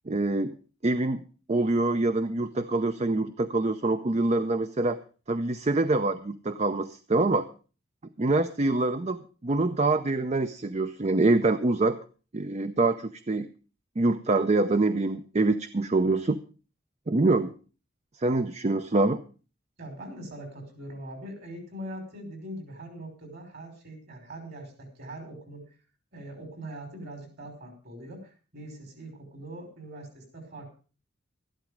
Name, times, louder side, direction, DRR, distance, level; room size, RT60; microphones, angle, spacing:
voice 1, 0.1-0.6 0.8-1.2 1.5-5.0 5.3-7.5 8.2-12.0 12.3-13.5 14.0-16.4 17.1-17.5 18.2-19.2, right 2 dB, 35° right, 11 dB, 0.6 m, -25 dB
voice 2, 19.8-25.6 26.1-30.7, right 1 dB, 55° right, 5 dB, 5.3 m, -42 dB
13.0 x 12.0 x 5.1 m, 0.37 s
head